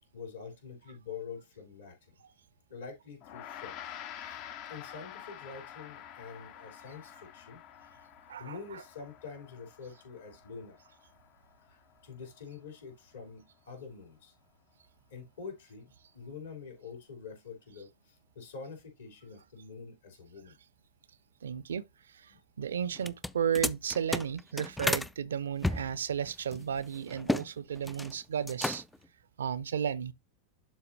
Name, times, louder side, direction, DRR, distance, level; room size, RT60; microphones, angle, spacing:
voice 1, 0.1-2.2 2.7-4.4 4.7-7.6 8.3-10.8 11.7-14.3 15.1-20.6 22.3-22.4 22.8-23.0, left 5 dB, 65° left, 3.5 m, -46 dB
Gong, 3.2-12.7, left 10 dB, 40° left, 0.8 m, -48 dB
voice 2, 21.4-21.8 22.6-28.8 29.4-30.1, right 8 dB, 65° right, 0.6 m, -33 dB
sound 1, 23.0-25.1 25.6-27.5 27.8-28.1 28.4-29.1, left 1 dB, 5° left, 0.4 m, -33 dB
11.5 x 4.3 x 2.7 m
figure-of-eight pair, 90°, 0 cm